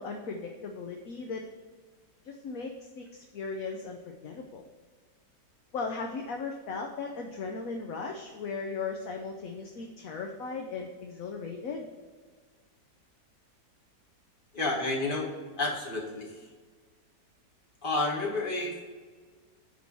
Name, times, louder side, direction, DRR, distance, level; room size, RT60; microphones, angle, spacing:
voice 1, 0.0-1.4 2.3-4.6 5.7-11.9, left 4 dB, 60° left, 3 dB, 1.1 m, -37 dB
voice 2, 14.5-16.5 17.8-18.8, left 2 dB, 30° left, -2 dB, 1.7 m, -31 dB
10.0 x 3.7 x 6.1 m, 1.5 s
omnidirectional pair, 1.8 m